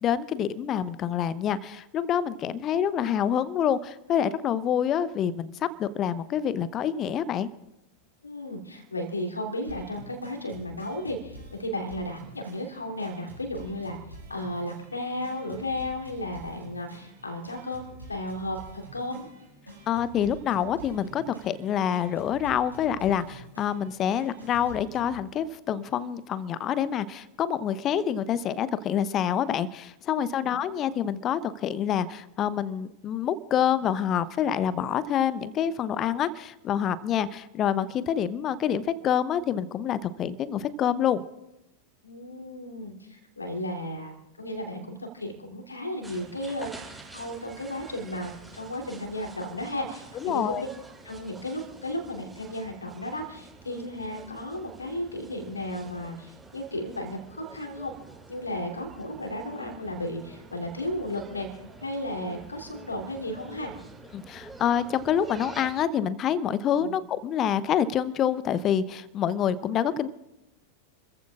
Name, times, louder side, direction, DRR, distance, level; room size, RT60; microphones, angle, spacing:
voice 1, 0.0-7.5 19.9-41.2 50.2-50.6 64.1-70.1, left 9 dB, 30° left, 17 dB, 0.7 m, -27 dB
voice 2, 8.2-14.0 14.3-19.3 30.3-30.5 42.0-50.7 51.0-57.9 58.3-63.7 66.6-66.9, left 1 dB, 80° left, 2 dB, 3.1 m, -34 dB
sound 1, 9.7-25.2, right 1 dB, 85° right, 5.5 m, -47 dB
sound 2, 46.0-65.8, right 3 dB, 5° right, 6.4 m, -48 dB
30.0 x 14.5 x 2.5 m, 0.91 s
figure-of-eight pair, 90°, 0 cm